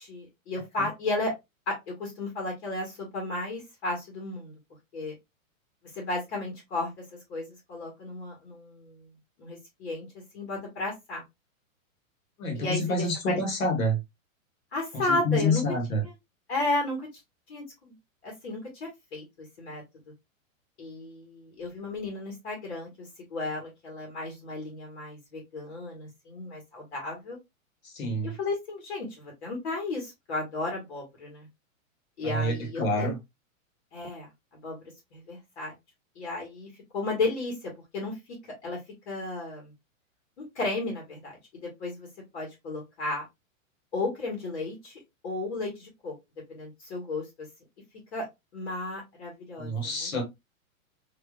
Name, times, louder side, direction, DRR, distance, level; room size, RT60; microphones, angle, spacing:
voice 1, 0.0-1.3 1.7-4.5 4.9-5.1 5.9-6.9 7.3-9.1 9.4-11.2 12.5-13.5 14.7-15.6 16.0-16.1 16.5-17.1 17.5-17.9 18.2-19.2 19.6-19.8 20.8-27.4 28.2-31.5 32.2-33.1 33.9-34.8 35.1-35.7 36.1-38.2 38.6-38.8 39.0-39.7 40.4-42.1 42.3-43.2 43.9-46.1 46.5-47.5 48.1-48.2 48.5-50.2, left 2 dB, 50° left, 1.7 m, -34 dB
voice 2, 12.4-14.0 14.9-16.0 27.8-28.3 32.2-33.1 49.6-50.2, left 1 dB, 80° left, 1.9 m, -28 dB
3.4 x 3.1 x 2.4 m
supercardioid pair, 175°, 41 cm